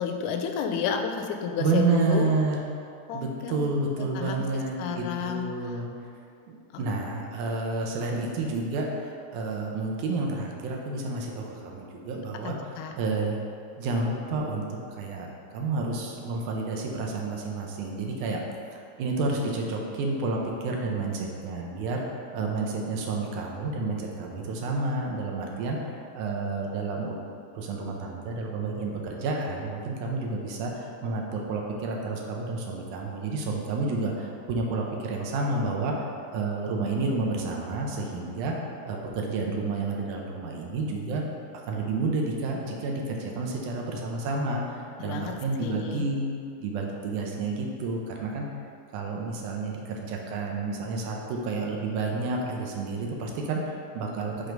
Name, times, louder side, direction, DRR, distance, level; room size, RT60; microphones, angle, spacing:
voice 1, 0.0-2.3 3.1-3.6 4.2-4.5 4.8-5.8 6.7-6.8 12.4-12.9 45.0-46.1, left 6 dB, 90° left, 5 dB, 2.0 m, -31 dB
voice 2, 1.6-2.6 3.1-5.9 6.5-12.6 13.0-13.4 13.8-18.4 18.7-22.0 22.3-27.2 27.5-36.1 36.3-38.6 38.9-41.2 41.7-48.5 48.9-54.3, right 3 dB, 85° right, 0 dB, 2.2 m, -30 dB
6.1 x 3.3 x 5.1 m, 2.4 s
omnidirectional pair, 3.5 m